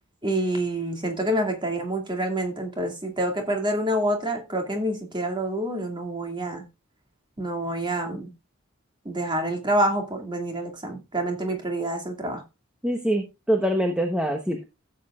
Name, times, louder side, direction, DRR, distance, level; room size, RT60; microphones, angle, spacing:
voice 1, 0.2-6.6 7.4-8.3 9.0-12.4, right 1 dB, 25° right, 2.2 m, -27 dB
voice 2, 12.8-14.7, equal, 5° right, 1.0 m, -24 dB
15.0 x 7.8 x 2.4 m
head